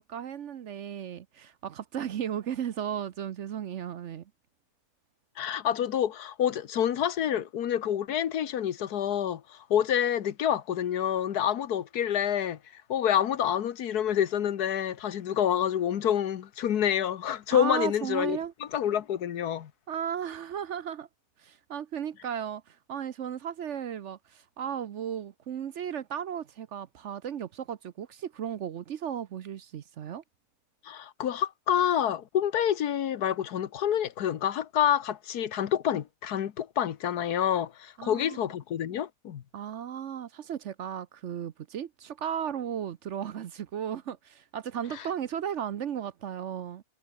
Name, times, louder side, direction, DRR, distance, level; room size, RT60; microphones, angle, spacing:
voice 1, 0.0-4.2 17.5-18.5 19.9-21.1 21.4-30.2 38.0-38.5 39.5-46.8, right 9 dB, 55° right, 0.9 m, -35 dB
voice 2, 5.4-19.7 30.8-39.4 44.9-45.0, left 10 dB, 85° left, 1.6 m, -28 dB
omnidirectional pair, 1.6 m